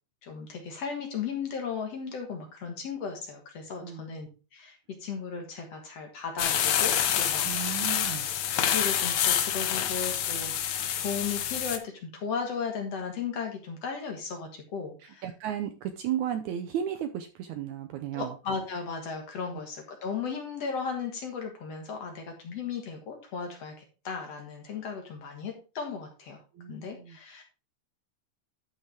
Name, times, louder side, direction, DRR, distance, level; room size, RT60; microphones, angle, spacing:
voice 1, 0.2-7.8 8.2-15.2 18.1-26.4 26.7-27.4, left 5 dB, 55° left, 3 dB, 2.3 m, -36 dB
voice 2, 3.8-4.1 7.4-8.3 15.0-18.3 26.5-27.2, right 10 dB, 75° right, 8 dB, 1.8 m, -34 dB
sound 1, 6.4-11.8, left 10 dB, 70° left, 1.6 m, -27 dB
12.5 x 5.7 x 3.4 m, 0.33 s
omnidirectional pair, 4.0 m